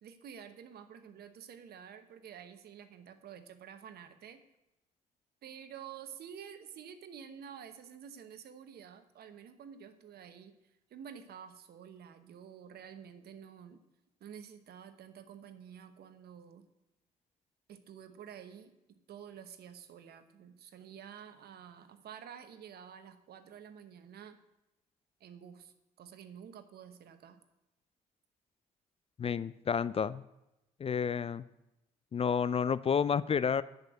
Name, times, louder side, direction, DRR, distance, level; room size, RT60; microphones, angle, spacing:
voice 1, 0.0-4.4 5.4-13.8 14.2-16.7 17.7-24.4 25.2-27.4, right 8 dB, 65° right, 10 dB, 1.0 m, -50 dB
voice 2, 29.2-30.2 30.8-31.4 32.1-33.6, left 7 dB, 35° left, 17 dB, 0.4 m, -30 dB
10.5 x 5.4 x 7.9 m, 0.91 s
hypercardioid pair, 50°, 18 cm